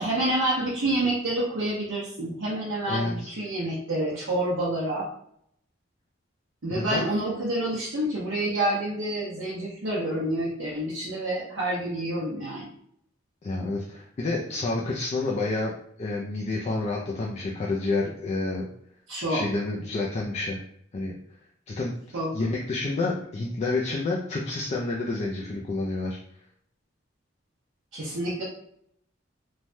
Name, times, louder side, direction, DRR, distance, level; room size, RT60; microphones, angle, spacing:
voice 1, 0.0-5.1 6.6-12.7 19.1-19.4 22.1-22.3 27.9-28.4, right 1 dB, 75° right, -7 dB, 0.7 m, -28 dB
voice 2, 2.9-3.4 6.7-7.1 13.4-15.7 16.0-18.7 19.3-20.6 20.9-21.2 21.7-26.2, left 2 dB, 35° left, -3 dB, 0.4 m, -29 dB
3.1 x 2.2 x 2.6 m, 0.68 s
head